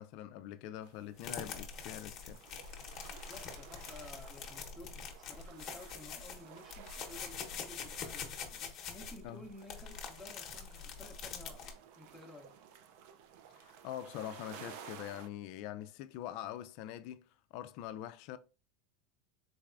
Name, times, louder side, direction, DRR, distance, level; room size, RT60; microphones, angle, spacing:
voice 1, 0.0-2.4 9.2-9.5 13.5-18.4, left 12 dB, 60° left, 0.3 m, -44 dB
sound 1, 0.8-15.3, right 8 dB, 65° right, 0.5 m, -55 dB
sound 2, 1.2-11.7, left 6 dB, 40° left, 0.9 m, -44 dB
voice 2, 3.1-12.6, left 1 dB, 5° left, 0.6 m, -53 dB
3.9 x 3.4 x 2.4 m
supercardioid pair, 135°, 0 cm